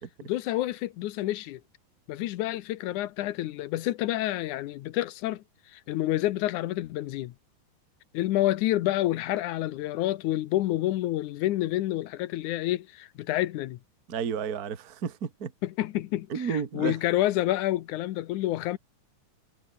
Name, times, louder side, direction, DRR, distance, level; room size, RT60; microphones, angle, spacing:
voice 1, 0.2-1.6 2.1-5.4 5.7-7.3 8.1-13.8 15.6-18.8, left 15 dB, 75° left, 2.2 m, -28 dB
voice 2, 14.1-15.5 16.3-17.0, right 7 dB, 35° right, 1.9 m, -31 dB
omnidirectional pair, 3.8 m